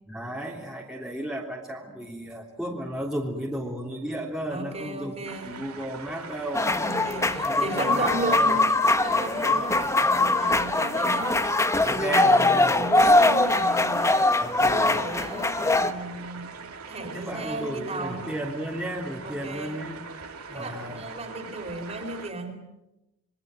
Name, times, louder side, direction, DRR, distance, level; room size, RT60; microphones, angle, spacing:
voice 1, 0.1-5.2 5.4-6.7 7.4-8.5 11.8-13.1 14.4-15.0 17.1-20.1 20.5-21.0, right 1 dB, 5° right, -3 dB, 3.3 m, -34 dB
voice 2, 4.5-5.6 6.8-8.7 9.0-11.5 11.8-16.5 16.9-18.3 19.2-19.9 20.5-22.6, right 2 dB, 30° right, 5 dB, 3.9 m, -34 dB
sound 1, 5.2-22.3, right 4 dB, 70° right, 3.3 m, -42 dB
sound 2, 6.5-15.9, left 2 dB, 15° left, 1.0 m, -22 dB
27.0 x 22.5 x 7.8 m, 0.96 s
head